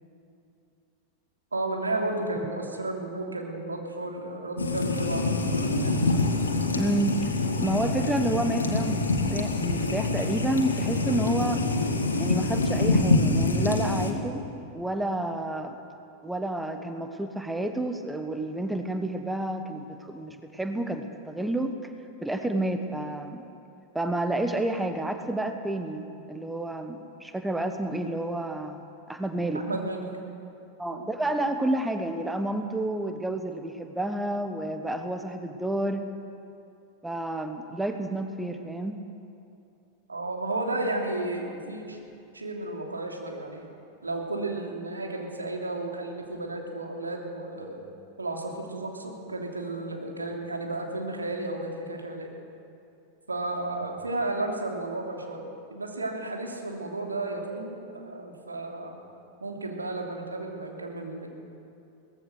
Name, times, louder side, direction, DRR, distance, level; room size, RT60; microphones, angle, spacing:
voice 1, 1.5-5.9 29.5-30.1 30.9-31.1 40.1-42.0 42.3-43.7 44.0-47.8 48.2-52.3 53.3-55.4 55.7-59.0 59.4-61.3, right 2 dB, 80° right, 1 dB, 3.1 m, -33 dB
sound 1, 4.6-14.1, left 3 dB, 75° left, 2.1 m, -25 dB
voice 2, 6.8-7.2 7.6-11.6 12.2-14.4 14.7-15.8 16.2-21.7 22.2-23.4 23.9-26.0 26.3-28.8 29.1-29.6 30.8-36.1 37.0-39.0, right 1 dB, 5° right, 7 dB, 1.3 m, -30 dB
22.5 x 18.5 x 6.6 m, 2.6 s
figure-of-eight pair, 90°, 0 cm